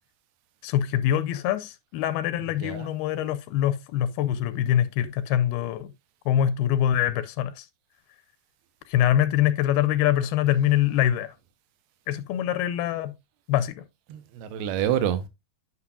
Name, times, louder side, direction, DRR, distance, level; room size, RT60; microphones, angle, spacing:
voice 1, 0.6-5.9 6.3-7.7 8.9-11.3 12.1-13.1 13.5-13.8, left 11 dB, 85° left, 2.4 m, -24 dB
voice 2, 2.6-2.9 14.1-15.3, right 10 dB, 85° right, 2.7 m, -27 dB
9.5 x 5.9 x 2.4 m
omnidirectional pair, 4.4 m